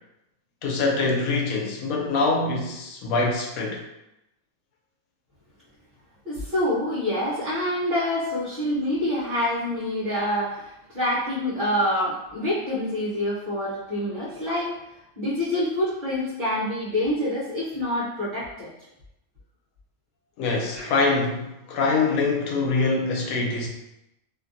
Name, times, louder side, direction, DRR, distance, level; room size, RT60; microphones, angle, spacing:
voice 1, 0.6-3.8 20.4-23.7, left 3 dB, 75° left, 0 dB, 1.0 m, -24 dB
voice 2, 6.2-14.7 15.2-18.7 20.7-20.9, left 1 dB, 40° right, -11 dB, 0.9 m, -26 dB
2.7 x 2.5 x 2.6 m, 0.88 s
omnidirectional pair, 1.5 m